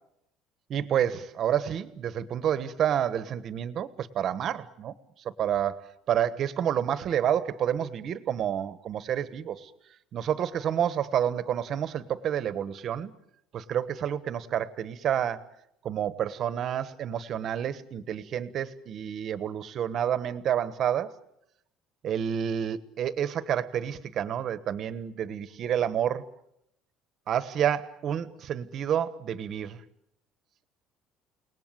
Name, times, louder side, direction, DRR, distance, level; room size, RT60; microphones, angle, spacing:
voice 1, 0.7-4.9 5.4-9.7 10.1-13.1 13.5-15.5 15.8-21.1 22.0-26.2 27.3-29.8, right 9 dB, 40° right, 15 dB, 1.2 m, -29 dB
30.0 x 19.0 x 9.1 m, 0.80 s
cardioid pair, 170°, 0 cm